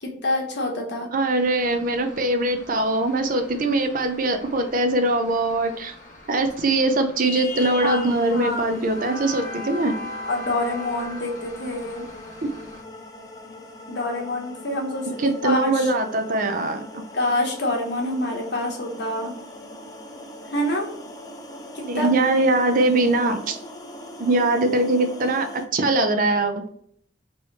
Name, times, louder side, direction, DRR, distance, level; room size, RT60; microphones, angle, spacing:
voice 1, 0.0-1.1 7.8-8.0 8.3-8.7 10.3-12.0 13.9-15.9 17.1-19.3 20.5-20.9 21.7-22.1, left 1 dB, 60° left, 0 dB, 1.2 m, -26 dB
voice 2, 1.1-5.9 6.3-9.9 15.2-17.0 21.9-23.6 24.2-26.6, right 2 dB, 45° right, 7 dB, 0.5 m, -22 dB
sound 1, 1.3-12.8, left 2 dB, 45° left, 1.0 m, -39 dB
sound 2, 7.5-25.7, left 1 dB, 20° left, 0.6 m, -41 dB
3.2 x 3.1 x 4.0 m, 0.65 s
head